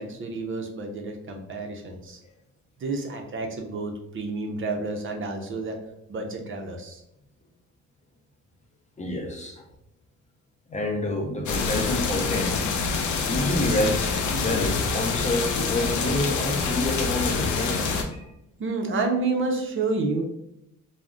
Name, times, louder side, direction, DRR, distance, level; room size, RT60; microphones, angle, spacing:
voice 1, 0.0-2.2 2.8-5.8 6.1-7.0 18.6-20.2, right 3 dB, 40° right, 3 dB, 0.5 m, -29 dB
voice 2, 9.0-9.6 10.7-12.6 13.2-18.3, left 1 dB, 25° left, 1 dB, 0.5 m, -28 dB
sound 1, 11.5-18.0, left 5 dB, 75° left, 0.5 m, -26 dB
2.4 x 2.0 x 3.5 m, 0.81 s
cardioid pair, 90°, 30 cm